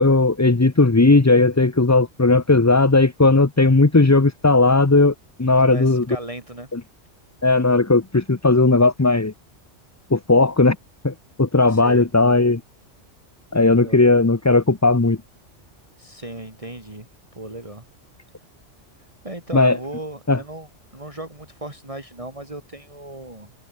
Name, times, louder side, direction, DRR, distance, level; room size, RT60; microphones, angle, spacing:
voice 1, 0.0-5.1 5.4-6.0 6.7-6.8 7.4-9.3 10.1-10.8 11.0-12.6 13.5-15.2 19.5-19.8 20.3-20.4, left 3 dB, 15° left, 0.7 m, -16 dB
voice 2, 5.6-6.7 11.7-12.1 13.8-14.0 16.0-17.1 17.4-17.8 19.2-23.6, right 1 dB, 25° right, 3.5 m, -36 dB
omnidirectional pair, 1.2 m